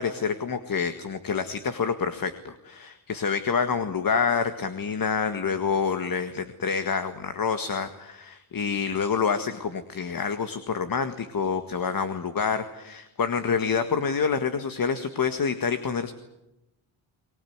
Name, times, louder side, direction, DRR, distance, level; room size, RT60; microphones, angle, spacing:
voice 1, 0.0-16.1, left 6 dB, 45° left, 9 dB, 1.8 m, -27 dB
23.5 x 20.5 x 9.6 m, 0.92 s
cardioid pair, 105°, 50 cm